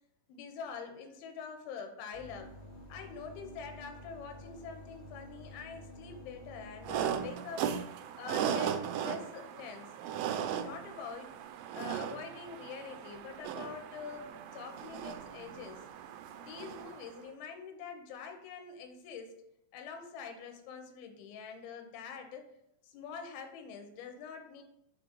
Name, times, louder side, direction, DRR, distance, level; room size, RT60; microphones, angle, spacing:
voice 1, 0.3-2.5 2.9-7.7 8.2-9.9 10.3-11.4 11.7-15.9 16.3-19.4 19.7-22.5 22.8-24.6, left 6 dB, 85° left, 5 dB, 2.7 m, -45 dB
sound 1, 2.1-7.3, left 1 dB, 70° left, 1.5 m, -50 dB
sound 2, 6.8-17.2, right 8 dB, 80° right, 2.1 m, -37 dB
6.6 x 3.8 x 5.0 m, 0.77 s
omnidirectional pair, 4.4 m